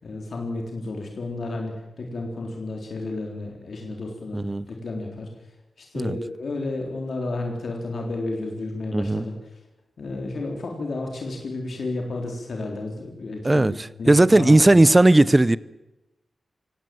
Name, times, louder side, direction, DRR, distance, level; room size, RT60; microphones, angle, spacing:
voice 1, 0.0-5.3 5.8-9.3 10.0-14.8, left 2 dB, 60° left, 3.7 m, -32 dB
voice 2, 4.3-4.7 5.9-6.2 8.9-9.3 13.4-15.6, right 2 dB, 20° right, 0.7 m, -17 dB
25.0 x 17.5 x 7.8 m
wide cardioid pair, 115°, 0 cm